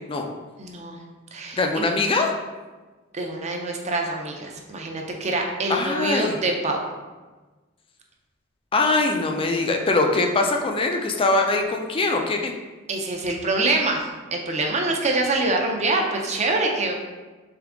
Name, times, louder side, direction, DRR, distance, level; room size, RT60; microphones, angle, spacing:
voice 1, 0.6-1.0 1.3-1.9 3.1-6.9 12.9-16.9, right 2 dB, 35° right, 1 dB, 0.6 m, -25 dB
voice 2, 1.6-2.3 5.7-6.4 8.7-12.5, left 3 dB, 25° left, 3 dB, 0.4 m, -22 dB
3.7 x 3.5 x 3.5 m, 1.3 s
head